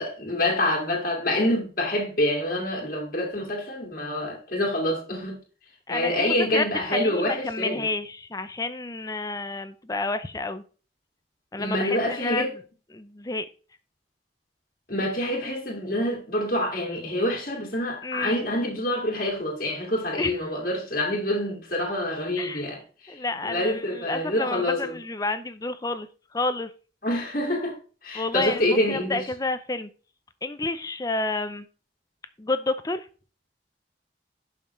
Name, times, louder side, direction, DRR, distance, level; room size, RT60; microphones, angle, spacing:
voice 1, 0.0-5.4 5.9-7.9 11.6-12.5 14.9-25.0 27.0-27.8 28.0-29.2, left 1 dB, 50° left, 2.1 m, -26 dB
voice 2, 5.9-6.7 6.9-10.6 11.5-12.5 12.9-13.5 18.0-18.4 20.2-20.3 22.4-22.6 23.1-26.1 26.3-26.7 28.1-29.9 30.4-31.7 32.4-33.1, left 3 dB, 20° left, 0.6 m, -30 dB
11.0 x 5.8 x 3.2 m
head